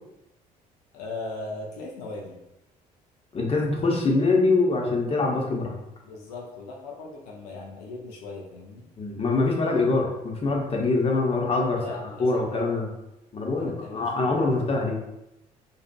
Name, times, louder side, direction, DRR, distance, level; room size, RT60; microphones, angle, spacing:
voice 1, 0.9-2.4 6.0-8.9 11.7-12.6 13.5-14.7, left 3 dB, 75° left, -1 dB, 0.5 m, -39 dB
voice 2, 3.3-5.7 9.0-12.9 13.3-15.0, left 3 dB, 30° left, -1 dB, 0.7 m, -24 dB
2.6 x 2.3 x 2.2 m, 0.88 s
hypercardioid pair, 55°, 21 cm